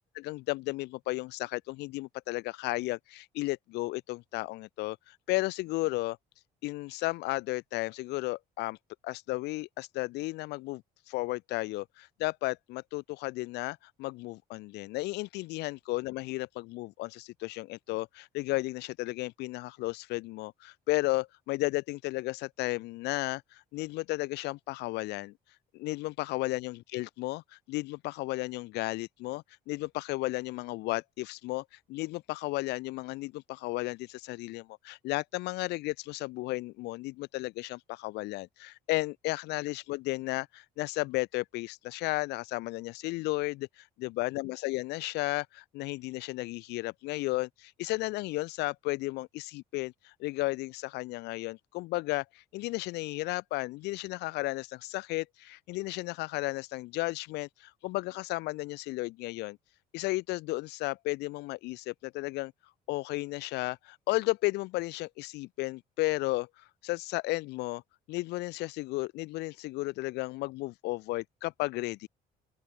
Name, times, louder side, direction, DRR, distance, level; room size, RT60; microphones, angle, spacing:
voice 1, 0.1-6.2 6.6-8.8 9.0-25.3 25.7-59.6 59.9-62.5 62.9-67.8 68.1-72.1, left 20 dB, 85° left, 0.7 m, -34 dB
open air
cardioid pair, 110°, 17 cm